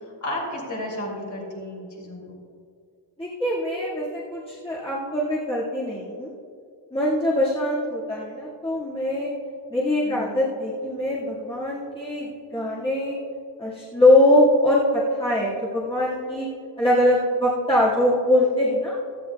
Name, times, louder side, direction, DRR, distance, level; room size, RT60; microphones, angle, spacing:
voice 1, 0.0-2.4 10.0-10.4, left 1 dB, 40° left, -2 dB, 3.1 m, -33 dB
voice 2, 3.2-6.3 6.9-9.3 9.7-13.2 13.6-16.5 16.8-19.0, left 1 dB, 10° left, -9 dB, 2.0 m, -22 dB
16.5 x 14.0 x 2.3 m, 2.4 s
wide cardioid pair, 170°, 44 cm